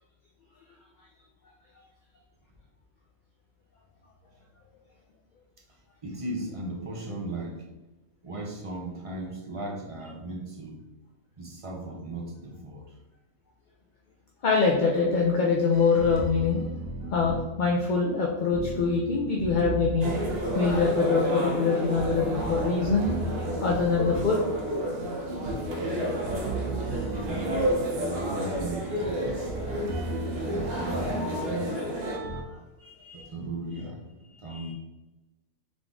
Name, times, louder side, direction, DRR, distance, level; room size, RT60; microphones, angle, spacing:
voice 1, 6.0-7.7 8.2-10.8 11.4-12.9 27.2-29.5 30.5-31.8 33.1-34.0 34.4-34.7, right 2 dB, 35° right, 0 dB, 0.6 m, -37 dB
voice 2, 14.4-16.6 17.1-20.1 20.5-23.1 23.6-24.4 32.8-33.3 34.3-34.7, left 4 dB, 55° left, -2 dB, 0.5 m, -24 dB
sound 1, 15.7-32.4, right 2 dB, 90° right, 1.1 m, -37 dB
sound 2, 20.0-32.2, equal, 55° right, 0.9 m, -31 dB
3.8 x 3.5 x 3.7 m, 1.1 s
omnidirectional pair, 1.4 m